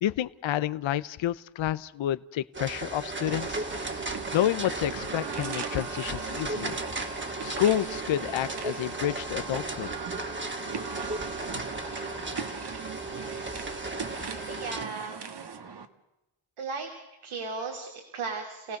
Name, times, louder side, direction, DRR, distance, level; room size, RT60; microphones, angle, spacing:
voice 1, 0.0-3.6 4.3-6.8 7.4-9.9, left 12 dB, 65° left, 14 dB, 0.8 m, -29 dB
sound 1, 2.5-14.8, right 2 dB, 25° right, 2.0 m, -35 dB
sound 2, 3.3-15.9, right 6 dB, 50° right, 1.7 m, -40 dB
voice 2, 14.5-15.2 16.6-16.9 17.2-18.8, right 4 dB, 80° right, 3 dB, 3.2 m, -36 dB
29.0 x 17.5 x 6.5 m, 0.98 s
wide cardioid pair, 140°, 49 cm